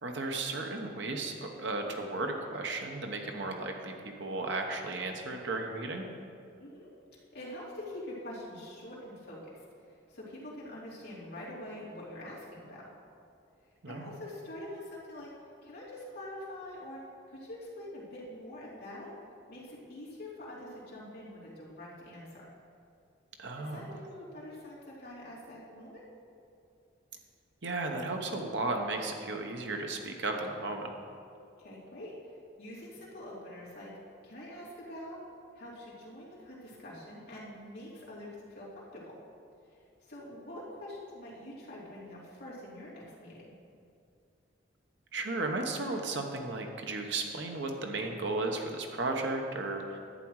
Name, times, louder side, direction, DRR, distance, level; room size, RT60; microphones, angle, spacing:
voice 1, 0.0-6.1 13.8-14.1 23.4-24.0 27.6-30.9 45.1-50.0, right 2 dB, 65° right, 3 dB, 1.0 m, -34 dB
voice 2, 7.3-9.6 10.1-12.9 13.9-15.3 15.6-17.0 17.3-19.1 19.5-22.4 23.6-26.0 31.6-32.1 32.6-33.9 34.2-35.2 35.5-39.1 40.0-43.5, left 1 dB, 55° left, -7 dB, 2.9 m, -45 dB
11.0 x 8.4 x 4.7 m, 2.4 s
head